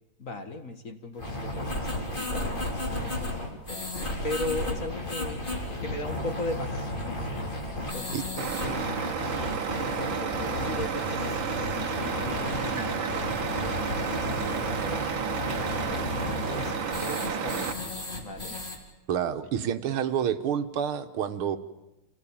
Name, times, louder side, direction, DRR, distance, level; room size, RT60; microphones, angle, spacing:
voice 1, 0.2-5.4 5.8-7.2 7.8-8.8 9.8-13.2 13.6-16.0 16.5-16.7 17.0-17.7 18.2-18.6, left 2 dB, 40° left, 6 dB, 1.9 m, -38 dB
sound 1, 1.2-18.8, left 1 dB, 25° left, 3.4 m, -33 dB
sound 2, 2.3-17.9, left 4 dB, 70° left, 5.1 m, -49 dB
Truck, 8.4-17.7, right 6 dB, 65° right, 2.1 m, -31 dB
voice 2, 19.1-21.6, right 9 dB, 85° right, 9 dB, 2.1 m, -28 dB
27.5 x 18.0 x 8.8 m, 0.98 s
omnidirectional pair, 2.3 m